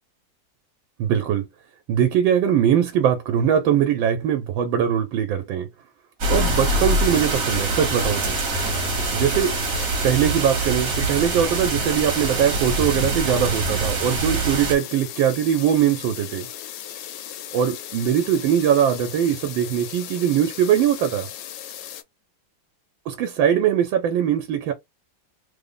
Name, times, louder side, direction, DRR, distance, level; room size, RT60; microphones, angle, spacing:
voice 1, 1.0-1.5 1.9-5.7 6.3-8.3 9.1-9.5 10.0-16.5 17.5-21.3 23.1-24.7, right 9 dB, 80° right, 1.4 m, -21 dB
sound 1, 6.2-14.8, right 2 dB, 55° right, 1.3 m, -24 dB
sound 2, 6.3-22.0, left 11 dB, 75° left, 1.1 m, -36 dB
3.3 x 2.0 x 3.7 m
omnidirectional pair, 2.1 m